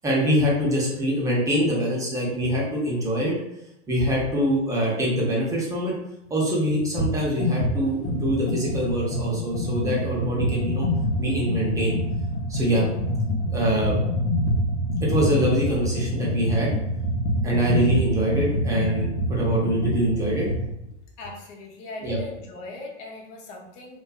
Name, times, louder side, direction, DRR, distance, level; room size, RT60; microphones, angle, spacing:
voice 1, 0.0-3.3 3.9-5.9 6.3-10.9 11.2-11.9 12.5-12.9 13.5-14.0 15.0-16.7 17.4-20.5 22.0-22.2, equal, 10° right, -5 dB, 0.6 m, -24 dB
sound 1, 7.0-7.1 7.4-20.7, equal, 85° left, 0.7 m, -26 dB
voice 2, 21.2-24.0, left 2 dB, 40° left, 0 dB, 0.6 m, -39 dB
2.5 x 2.3 x 2.2 m, 0.86 s
hypercardioid pair, 125°, 36 cm